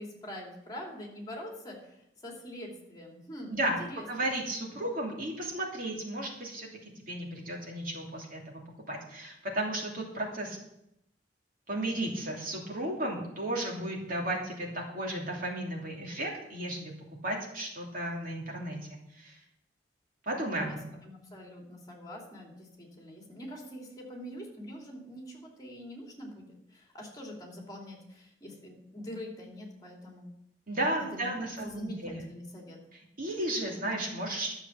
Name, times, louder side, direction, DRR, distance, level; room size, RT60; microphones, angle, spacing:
voice 1, 0.0-4.1 20.6-30.3 31.0-31.3 31.6-32.8, equal, 20° left, 0 dB, 2.8 m, -44 dB
voice 2, 3.5-6.7 7.1-8.6 8.9-10.6 11.7-16.9 17.2-18.8 19.2-19.4 20.3-20.8 30.7-32.2 33.2-34.5, right 1 dB, 50° right, -1 dB, 2.8 m, -34 dB
12.5 x 7.0 x 7.2 m, 0.81 s
head